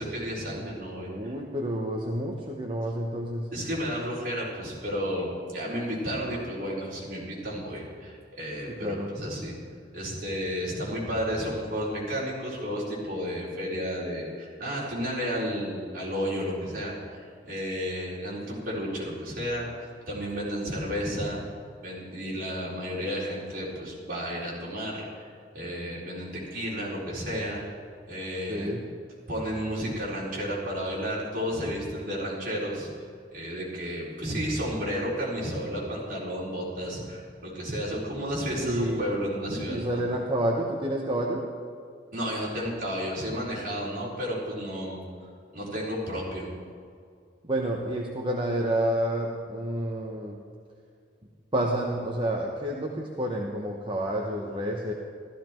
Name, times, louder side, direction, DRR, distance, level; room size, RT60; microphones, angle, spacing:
voice 1, 0.0-1.3 3.5-9.6 9.9-21.4 21.8-27.6 28.1-28.7 29.3-32.9 33.3-40.0 42.1-45.0 45.5-46.5, equal, 55° right, -6 dB, 4.4 m, -32 dB
voice 2, 1.1-3.5 8.7-9.1 28.5-28.8 38.6-39.1 39.7-41.4 47.4-50.4 51.5-54.9, right 1 dB, 30° right, -1 dB, 1.0 m, -29 dB
14.5 x 14.0 x 4.5 m, 2.3 s
head